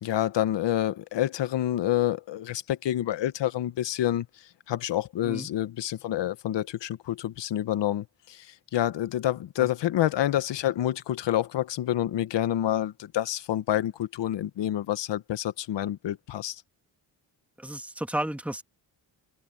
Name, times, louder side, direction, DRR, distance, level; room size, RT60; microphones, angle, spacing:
voice 1, 0.0-4.3 4.7-16.6, left 12 dB, 80° left, 1.3 m, -28 dB
voice 2, 17.6-18.6, right 1 dB, 5° right, 2.4 m, -32 dB
cardioid pair, 85°, 42 cm